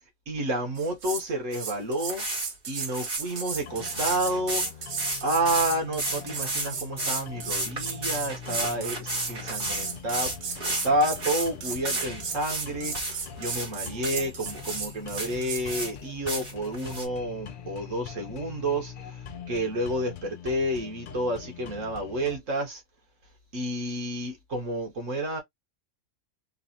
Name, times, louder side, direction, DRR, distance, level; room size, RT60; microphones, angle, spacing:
voice 1, 0.3-2.2 2.7-4.6 5.2-13.0 13.4-19.2 19.5-22.8 23.5-25.4, right 1 dB, 85° right, 1.9 m, -30 dB
sound 1, 0.8-1.3 1.5-15.7, right 6 dB, 65° right, 1.2 m, -35 dB
sound 2, 1.5-1.6 2.1-2.5 2.8-4.7 5.0-5.7 6.0-6.7 7.0-7.2 7.5-12.7 12.9-13.7 14.0-14.2 14.5-14.8 15.2-15.9 16.3-17.1, right 2 dB, 45° right, 1.9 m, -32 dB
sound 3, 3.5-22.4, left 7 dB, 55° left, 0.7 m, -43 dB
3.9 x 2.5 x 2.8 m
omnidirectional pair, 1.3 m